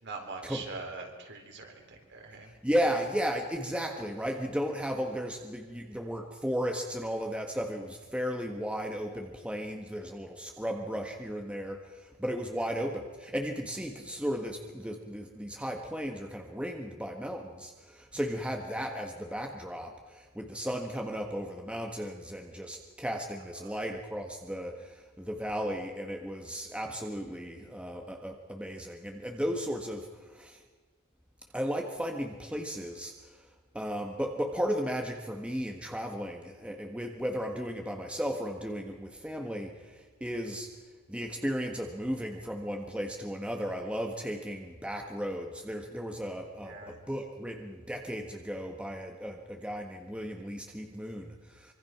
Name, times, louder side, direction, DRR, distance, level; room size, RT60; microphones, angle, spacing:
voice 1, 0.0-2.5 23.5-23.7 46.6-47.0, right 3 dB, 55° right, 3 dB, 4.3 m, -43 dB
voice 2, 2.4-30.6 31.5-33.5 33.7-40.7 41.1-51.7, equal, 5° right, 2 dB, 1.6 m, -35 dB
25.0 x 24.5 x 6.0 m, 1.4 s
head